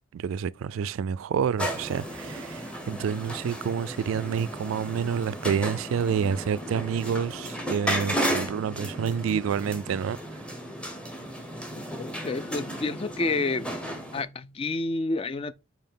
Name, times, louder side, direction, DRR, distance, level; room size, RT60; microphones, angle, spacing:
voice 1, 0.1-10.2, right 7 dB, 80° right, 0.3 m, -28 dB
sound 1, 1.6-14.2, equal, 5° left, 1.1 m, -34 dB
voice 2, 11.9-13.7 14.1-15.5, left 3 dB, 30° left, 0.3 m, -29 dB
5.5 x 4.6 x 3.7 m
head